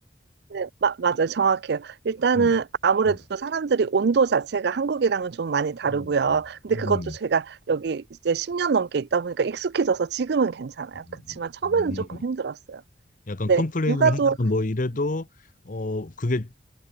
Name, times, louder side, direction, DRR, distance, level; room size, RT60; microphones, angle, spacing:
voice 1, 0.5-12.8 13.5-13.6 13.9-14.4, right 5 dB, 60° right, 0.5 m, -24 dB
voice 2, 6.7-7.1 11.1-12.2 13.3-15.3 15.6-16.5, left 2 dB, 45° left, 0.9 m, -28 dB
head